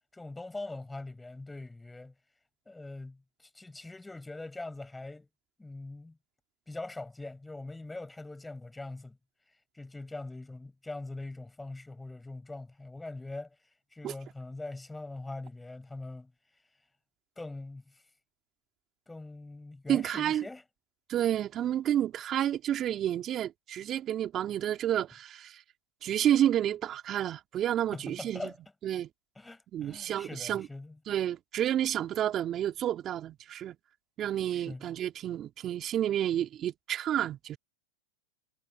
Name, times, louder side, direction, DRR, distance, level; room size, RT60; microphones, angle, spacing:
voice 1, 0.1-2.1 2.7-5.3 5.6-6.2 6.7-9.2 9.7-13.6 13.9-16.3 17.4-18.0 19.1-20.6 27.9-28.6 29.4-31.0 34.5-34.9, left 2 dB, 10° left, 7.7 m, -42 dB
voice 2, 19.9-20.4 21.1-25.6 26.0-28.4 28.8-29.1 29.7-30.7 31.1-33.8 34.2-37.6, right 11 dB, 35° right, 2.5 m, -30 dB
hypercardioid pair, 110°, 0 cm